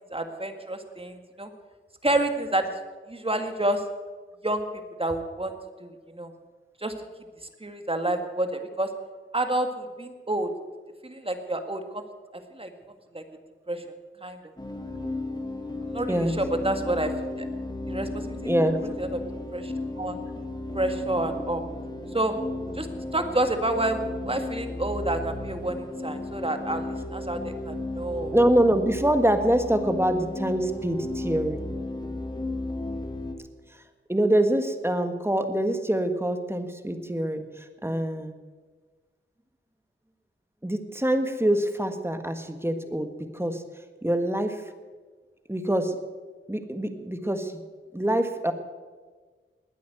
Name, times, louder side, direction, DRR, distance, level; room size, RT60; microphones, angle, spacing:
voice 1, 0.1-1.5 2.0-2.7 3.1-3.8 4.4-4.6 5.0-5.5 5.8-6.3 6.8-6.9 7.6-8.9 9.3-10.5 11.0-12.0 12.5-12.7 13.1-13.2 13.7-13.8 14.2-14.4 15.9-17.5 17.9-18.5 19.0-19.2 19.5-20.2 20.7-21.6 22.1-22.3 22.8-22.9 23.1-24.0 24.3-25.8 26.0-26.9 27.1-28.3, right 1 dB, 25° right, 6 dB, 1.9 m, -28 dB
sound 1, 14.6-33.3, left 2 dB, 20° left, 2.2 m, -34 dB
voice 2, 18.4-18.8 28.3-31.6 34.1-38.3 40.6-43.6 44.0-44.6 45.5-46.0 46.5-47.6 47.9-48.5, right 1 dB, 10° right, 7 dB, 1.5 m, -25 dB
20.0 x 8.5 x 7.8 m, 1.4 s
wide cardioid pair, 65°, 21 cm